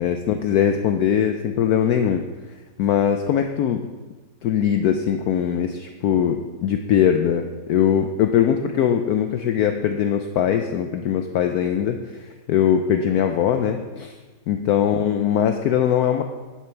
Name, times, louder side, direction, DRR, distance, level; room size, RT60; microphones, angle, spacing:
voice 1, 0.0-2.2 2.8-3.8 4.4-14.1 14.5-16.2, left 9 dB, 70° left, 6 dB, 0.9 m, -21 dB
10.0 x 8.1 x 4.5 m, 1.3 s
omnidirectional pair, 2.0 m